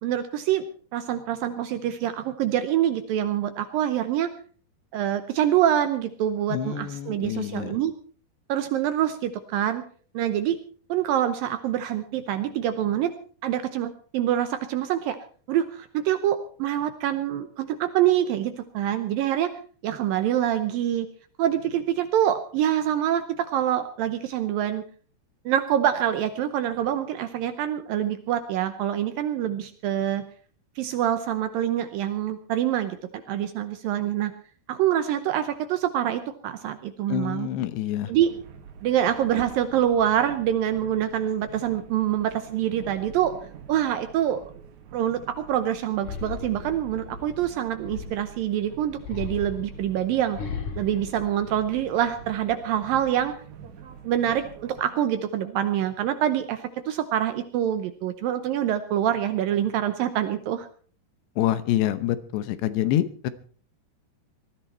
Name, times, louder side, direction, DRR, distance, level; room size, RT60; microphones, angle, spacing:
voice 1, 0.0-0.6 0.9-4.3 4.9-7.9 8.5-9.8 10.1-10.6 10.9-13.1 13.4-15.2 15.5-19.5 19.8-21.1 21.4-24.8 25.5-30.2 30.8-33.0 33.3-34.3 34.7-37.5 38.1-38.3 38.8-43.3 43.7-44.4 44.9-50.4 50.8-53.3 54.0-60.7, right 11 dB, 75° right, 10 dB, 2.2 m, -25 dB
voice 2, 6.5-7.8 37.1-38.1 61.4-63.3, left 12 dB, 85° left, 14 dB, 3.1 m, -26 dB
sound 1, 38.1-54.8, right 8 dB, 55° right, 2.4 m, -45 dB
sound 2, 46.0-48.4 49.0-52.1 52.5-53.1, left 6 dB, 50° left, 2.8 m, -37 dB
19.5 x 13.5 x 4.4 m, 0.42 s
omnidirectional pair, 4.9 m